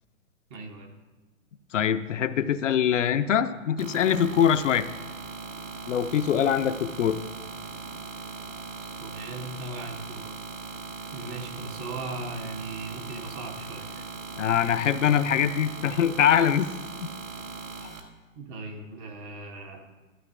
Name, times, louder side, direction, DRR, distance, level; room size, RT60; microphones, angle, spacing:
voice 1, 0.5-0.9 8.8-10.4 11.1-14.1 18.3-19.8, right 3 dB, 20° right, 3 dB, 0.6 m, -38 dB
voice 2, 1.7-4.9 5.9-7.2 14.4-16.7 17.0-17.1 17.8-17.9, left 9 dB, 60° left, 11 dB, 0.5 m, -23 dB
sound 1, 3.8-18.0, right 4 dB, 70° right, 1.5 m, -39 dB
13.5 x 12.5 x 2.4 m, 1.2 s
figure-of-eight pair, 130°, 41 cm